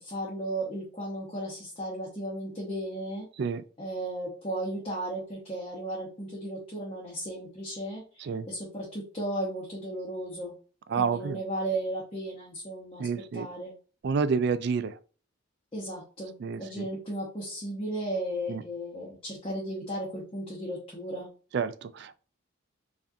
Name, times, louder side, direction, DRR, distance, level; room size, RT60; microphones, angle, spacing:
voice 1, 0.0-3.3 3.8-10.5 11.0-13.1 13.3-13.7 15.7-16.3 16.6-21.3, right 1 dB, 25° left, 0.9 m, -35 dB
voice 2, 10.9-11.4 13.0-13.5 14.0-15.0 16.4-16.9 18.5-18.6 21.5-22.2, right 5 dB, 55° right, 0.3 m, -29 dB
4.8 x 2.5 x 2.6 m
head